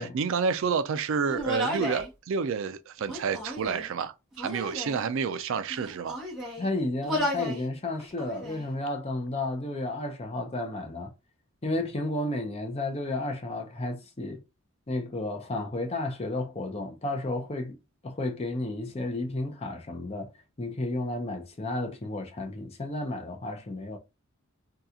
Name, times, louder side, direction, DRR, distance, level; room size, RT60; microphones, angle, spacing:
voice 1, 0.0-6.2, right 5 dB, 60° right, 0.3 m, -29 dB
Human voice, 1.3-2.1 3.0-3.9 4.4-5.0 5.7-6.7 7.0-7.6 8.0-8.7, equal, ahead, 0.9 m, -33 dB
voice 2, 6.6-11.1 11.6-14.4 14.9-17.8 18.0-20.3 20.6-24.0, left 2 dB, 25° left, 0.6 m, -32 dB
2.8 x 2.3 x 3.6 m
head